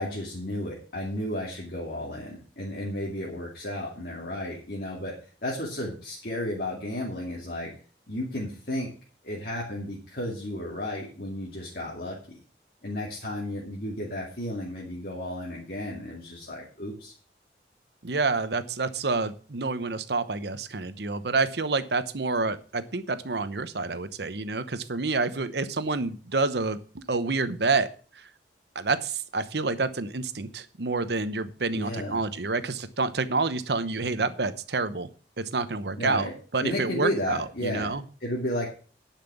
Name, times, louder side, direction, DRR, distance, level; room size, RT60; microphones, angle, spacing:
voice 1, 0.0-7.7 8.1-8.9 9.2-12.4 12.8-17.1 31.7-32.2 36.0-36.3 36.6-37.9 38.2-38.7, left 1 dB, 55° left, -3 dB, 2.5 m, -33 dB
voice 2, 18.0-27.9 28.2-28.3 28.7-35.1 35.4-38.0, right 3 dB, 70° right, 13 dB, 0.9 m, -28 dB
10.5 x 5.9 x 7.0 m, 0.40 s
head